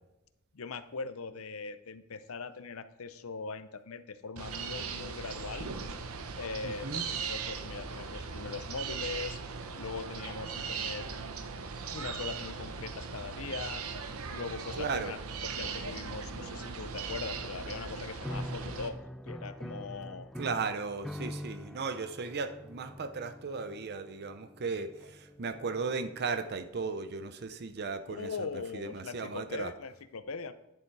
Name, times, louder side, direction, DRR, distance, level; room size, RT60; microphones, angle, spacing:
voice 1, 0.5-5.7 6.4-9.4 9.7-11.1 11.9-13.8 14.3-15.2 15.4-19.0 19.3-20.3 28.1-30.5, left 4 dB, 75° left, 11 dB, 0.7 m, -40 dB
sound 1, 4.4-18.9, right 5 dB, 80° right, 0.9 m, -39 dB
voice 2, 6.6-7.0 14.8-15.1 20.4-28.3 28.7-29.7, right 4 dB, 50° right, 10 dB, 0.7 m, -36 dB
sound 2, 18.2-26.5, equal, 5° left, 0.3 m, -44 dB
10.5 x 6.9 x 4.7 m, 0.89 s
head